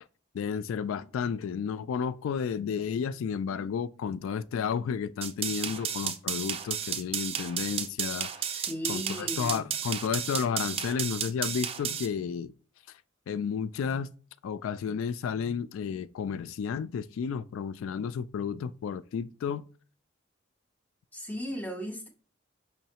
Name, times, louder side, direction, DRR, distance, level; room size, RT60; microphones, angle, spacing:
voice 1, 0.3-8.6 8.9-12.5 13.3-14.1 14.4-19.6, left 6 dB, 90° left, 0.3 m, -32 dB
sound 1, 5.2-12.1, right 8 dB, 30° right, 0.4 m, -33 dB
voice 2, 8.5-9.7 21.1-22.1, equal, 10° left, 0.7 m, -36 dB
5.7 x 3.1 x 2.9 m
head